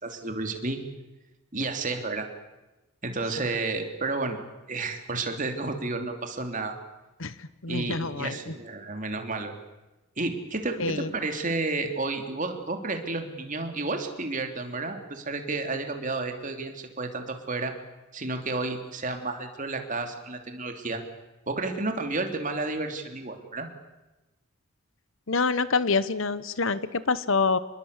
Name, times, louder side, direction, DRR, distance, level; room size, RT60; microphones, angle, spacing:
voice 1, 0.0-0.8 1.5-2.3 3.0-4.4 4.7-6.7 7.7-9.6 10.2-17.7 18.1-21.0 21.5-23.7, right 3 dB, 35° right, 5 dB, 3.0 m, -31 dB
voice 2, 7.2-8.5 10.8-11.1 25.3-27.6, left 4 dB, 60° left, 15 dB, 1.1 m, -26 dB
27.0 x 21.5 x 8.3 m, 1.0 s
head